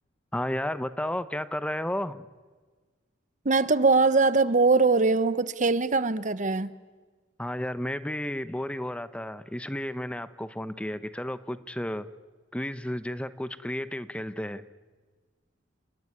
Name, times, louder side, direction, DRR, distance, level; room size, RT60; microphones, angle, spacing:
voice 1, 0.3-2.3 7.4-12.1 12.5-14.6, left 1 dB, 5° left, 13 dB, 0.7 m, -32 dB
voice 2, 3.4-6.7, right 3 dB, 40° right, 15 dB, 0.9 m, -22 dB
29.5 x 19.5 x 9.7 m, 1.4 s
head